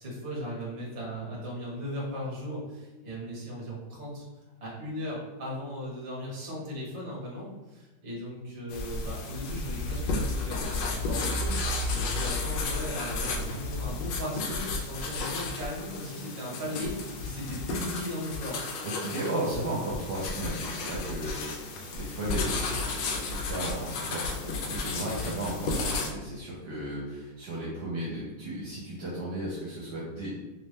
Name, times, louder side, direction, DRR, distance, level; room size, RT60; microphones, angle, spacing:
voice 1, 0.0-4.3 4.6-11.6 11.9-18.6, equal, 40° right, -4 dB, 1.3 m, -37 dB
sound 1, 8.7-26.1, left 3 dB, 75° left, 1.2 m, -33 dB
voice 2, 18.8-30.4, right 1 dB, 60° right, -6 dB, 1.3 m, -35 dB
3.3 x 3.3 x 3.1 m, 1.1 s
omnidirectional pair, 2.1 m